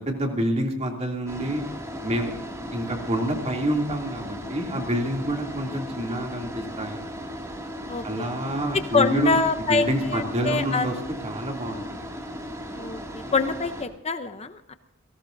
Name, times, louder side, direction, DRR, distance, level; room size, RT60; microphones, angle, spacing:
voice 1, 0.0-1.6 2.0-2.3 2.7-7.0 8.0-9.4 9.7-10.9 11.2-12.1, right 1 dB, 30° right, 1 dB, 2.8 m, -27 dB
sound 1, 1.3-13.8, equal, 15° right, 2.3 m, -37 dB
voice 2, 7.9-8.3 8.7-10.9 12.7-14.7, left 4 dB, 30° left, 9 dB, 0.7 m, -25 dB
28.0 x 18.0 x 2.7 m, 0.79 s
head